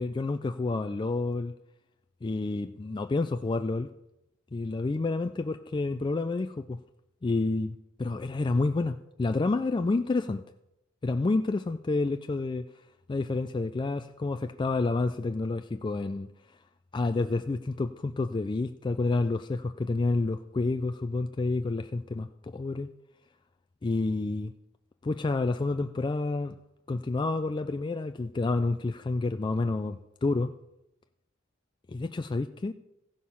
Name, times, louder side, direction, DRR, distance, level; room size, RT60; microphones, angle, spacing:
voice 1, 0.0-1.5 2.2-3.9 4.5-6.8 7.2-10.4 11.0-12.7 13.1-16.3 16.9-22.9 23.8-24.5 25.0-26.6 26.9-30.5 31.9-32.7, left 3 dB, 25° left, 0.3 m, -29 dB
15.0 x 6.5 x 5.5 m
head